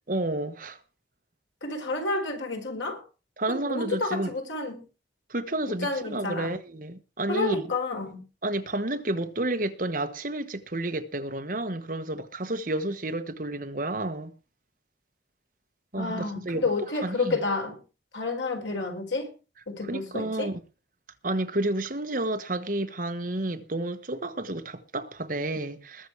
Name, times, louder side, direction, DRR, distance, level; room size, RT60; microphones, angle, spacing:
voice 1, 0.1-0.8 3.4-4.3 5.3-7.7 8.4-14.3 15.9-17.4 19.8-20.6 21.2-26.1, right 1 dB, 45° right, 1.3 m, -31 dB
voice 2, 1.6-3.0 3.5-4.8 5.7-6.5 7.3-8.2 16.0-17.8 18.1-19.3 19.7-20.5, left 3 dB, 80° left, 4.3 m, -30 dB
21.0 x 7.0 x 4.7 m
head